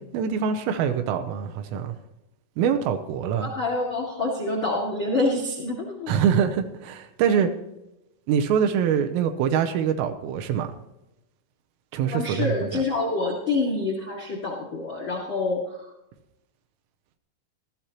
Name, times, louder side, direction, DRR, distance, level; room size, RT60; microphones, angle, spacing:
voice 1, 0.1-2.0 2.6-3.5 6.1-7.5 8.3-10.7 11.9-12.8, right 8 dB, 80° right, 7 dB, 3.2 m, -24 dB
voice 2, 3.4-6.1 12.1-15.6, left 2 dB, 60° left, -1 dB, 1.3 m, -27 dB
16.5 x 13.5 x 3.0 m, 0.92 s
omnidirectional pair, 6.0 m